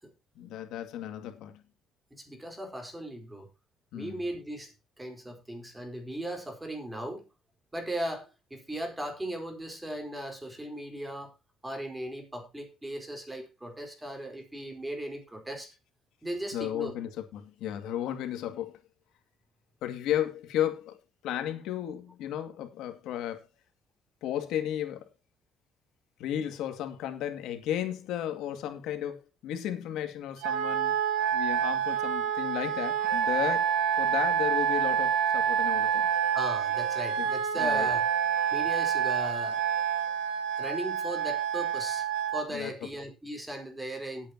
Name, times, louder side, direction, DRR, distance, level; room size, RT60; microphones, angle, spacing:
voice 1, 0.4-1.6 3.9-4.2 16.5-18.8 19.8-21.0 21.2-23.4 24.2-25.1 26.2-31.0 31.3-33.7 34.0-36.1 37.2-37.3 37.6-37.9 42.5-42.7, left 11 dB, 80° left, 2.2 m, -34 dB
voice 2, 2.1-3.5 3.9-7.3 7.7-11.3 11.6-15.7 16.2-16.9 36.3-38.0 38.5-39.6 40.6-44.3, right 1 dB, 10° right, 4.3 m, -37 dB
Wind instrument woodwind instrument, 30.4-42.4, right 8 dB, 85° right, 2.7 m, -27 dB
19.0 x 8.5 x 2.9 m
cardioid pair, 125°, 0 cm